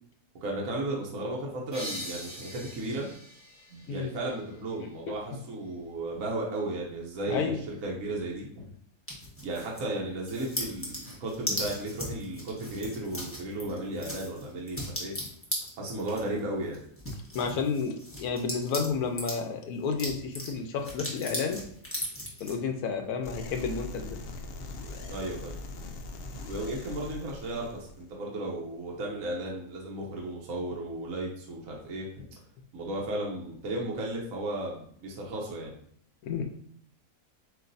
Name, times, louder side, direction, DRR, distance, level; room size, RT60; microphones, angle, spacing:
voice 1, 0.4-3.1 3.7-8.7 9.4-15.2 15.8-16.8 25.1-25.5 26.5-32.2 32.7-35.8, right 1 dB, 65° right, -2 dB, 1.2 m, -34 dB
sound 1, 1.7-5.1, equal, 10° right, 1.3 m, -43 dB
voice 2, 7.3-7.6 17.3-21.6 22.4-24.2 36.2-36.4, left 5 dB, 90° left, 5 dB, 1.2 m, -31 dB
sound 2, 9.1-9.9 10.2-19.4 19.8-22.5, equal, 10° left, 1.1 m, -37 dB
sound 3, 23.2-28.1, left 2 dB, 65° left, 0.6 m, -41 dB
7.7 x 2.6 x 2.6 m, 0.64 s
omnidirectional pair, 1.6 m